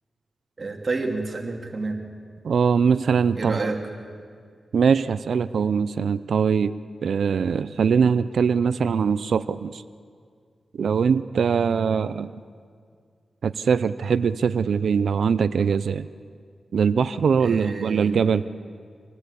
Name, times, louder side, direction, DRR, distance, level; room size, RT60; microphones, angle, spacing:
voice 1, 0.6-2.0 3.4-3.9 17.4-18.2, right 3 dB, 50° right, 2 dB, 2.6 m, -29 dB
voice 2, 2.4-3.7 4.7-6.8 7.0-9.8 10.8-12.4 13.4-16.1 16.7-18.5, right 6 dB, 80° right, 14 dB, 0.6 m, -22 dB
26.5 x 18.5 x 8.4 m, 2.1 s
cardioid pair, 45°, 0 cm